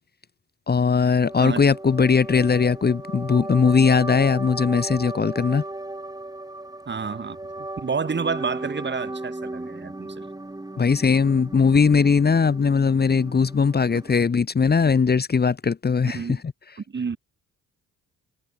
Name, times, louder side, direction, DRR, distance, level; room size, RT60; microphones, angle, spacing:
voice 1, 0.7-5.6 10.8-16.8, left 5 dB, 30° left, 2.0 m, -20 dB
sound 1, 1.2-14.2, right 2 dB, 10° right, 7.6 m, -36 dB
voice 2, 6.9-10.3 16.1-16.4 16.9-17.2, right 5 dB, 35° right, 5.5 m, -29 dB
cardioid pair, 90°, 30 cm